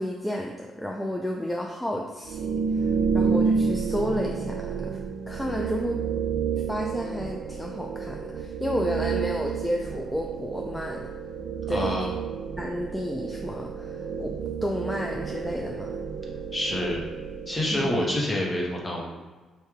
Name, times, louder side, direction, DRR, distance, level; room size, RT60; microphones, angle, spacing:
voice 1, 0.0-2.4 2.8-4.9 5.3-6.0 6.7-11.1 11.7-12.0 12.6-14.3 14.6-15.9 17.7-17.9, equal, 5° left, 0 dB, 0.4 m, -31 dB
sound 1, 2.2-18.0, right 6 dB, 75° right, 0.3 m, -30 dB
voice 2, 11.7-12.1 16.5-17.0 17.5-19.1, left 1 dB, 25° left, -3 dB, 1.2 m, -27 dB
4.8 x 2.7 x 3.5 m, 1.3 s
cardioid pair, 90°, 0 cm